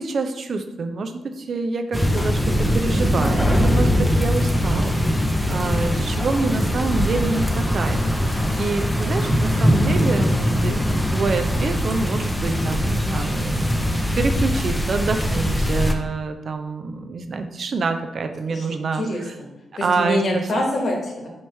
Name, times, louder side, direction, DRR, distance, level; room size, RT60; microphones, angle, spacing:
voice 1, 0.0-5.0 5.5-8.0 8.6-19.0 19.8-20.4, right 4 dB, 60° right, 7 dB, 0.4 m, -26 dB
sound 1, 1.9-15.9, equal, 5° left, 0.6 m, -21 dB
voice 2, 18.5-19.5 19.8-21.3, left 1 dB, 55° left, 0 dB, 1.1 m, -25 dB
4.7 x 2.9 x 3.3 m, 0.94 s
cardioid pair, 60°, 0 cm